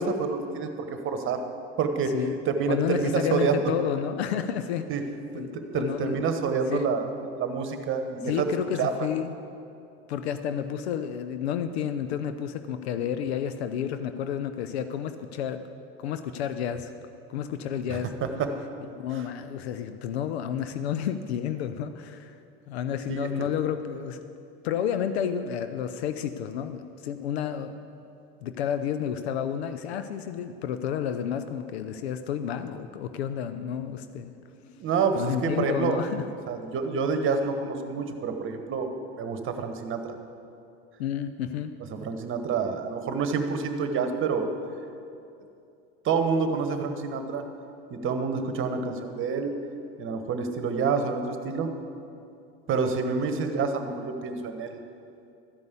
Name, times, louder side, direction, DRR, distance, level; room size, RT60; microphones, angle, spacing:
voice 1, 0.0-1.4 1.8-2.1 2.5-3.7 4.9-5.0 5.3-7.1 7.4-8.5 8.8-9.1 17.9-18.5 19.1-19.2 23.1-23.3 34.5-36.0 36.5-38.9 39.2-40.2 41.9-44.5 46.0-47.4 47.9-49.6 50.0-51.7 52.7-54.7, right 5 dB, 40° right, 7 dB, 1.2 m, -28 dB
voice 2, 2.7-4.9 5.3-6.2 6.7-6.9 8.2-9.3 10.1-15.6 16.0-16.9 17.3-18.1 18.9-22.4 22.7-24.3 24.6-27.7 28.4-34.3 35.1-36.2 41.0-41.7, left 9 dB, 85° left, 10 dB, 0.6 m, -30 dB
13.0 x 5.4 x 8.2 m, 2.6 s
hypercardioid pair, 95°, 31 cm